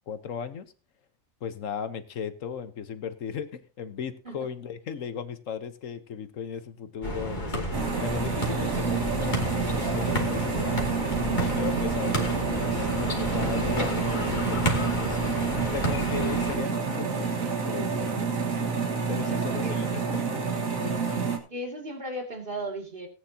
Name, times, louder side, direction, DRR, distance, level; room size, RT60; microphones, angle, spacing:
voice 1, 0.1-0.7 1.4-7.7 8.0-10.8 11.2-15.2 15.7-18.3 19.1-20.2 20.5-21.0, left 7 dB, 70° left, 12 dB, 1.4 m, -37 dB
sound 1, 7.0-16.6, equal, 35° left, 2.6 m, -31 dB
sound 2, 7.7-21.4, right 5 dB, 85° right, 2.1 m, -28 dB
voice 2, 19.1-19.8 21.5-23.1, right 1 dB, 40° right, 2 dB, 2.8 m, -36 dB
18.0 x 9.5 x 2.8 m, 0.34 s
omnidirectional pair, 1.4 m